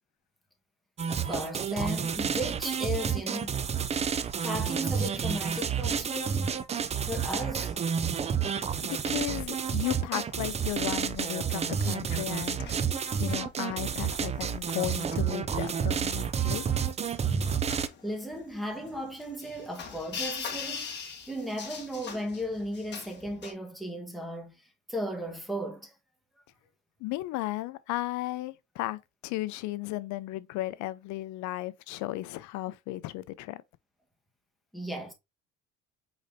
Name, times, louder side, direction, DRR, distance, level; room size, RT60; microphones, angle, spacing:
sound 1, 1.0-17.9, right 7 dB, 20° right, 0.4 m, -30 dB
voice 1, 1.1-3.6 4.4-6.5 7.0-7.9 18.0-24.6 24.9-25.9 34.7-35.1, equal, ahead, 1.2 m, -36 dB
voice 2, 8.8-16.7 27.0-33.6, left 17 dB, 75° left, 0.6 m, -35 dB
sound 2, 9.5-23.5, left 6 dB, 35° left, 1.4 m, -43 dB
5.0 x 4.0 x 2.6 m
cardioid pair, 125°, 29 cm